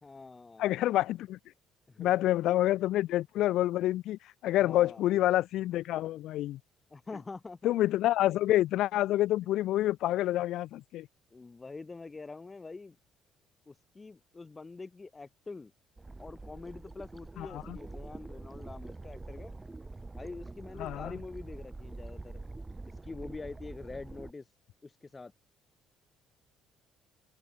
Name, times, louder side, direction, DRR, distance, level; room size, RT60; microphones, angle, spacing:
voice 1, 0.0-0.7 1.9-2.3 4.6-5.0 6.9-7.8 11.3-13.0 13.7-15.7 16.2-19.5 20.1-22.4 23.0-24.5 24.8-25.3, left 3 dB, 25° left, 4.3 m, -45 dB
voice 2, 0.6-1.4 2.0-6.6 7.6-11.1 17.4-17.8 20.8-21.1, left 14 dB, 65° left, 1.3 m, -28 dB
sound 1, 16.0-24.3, right 2 dB, 20° right, 2.4 m, -45 dB
hypercardioid pair, 55°, 0 cm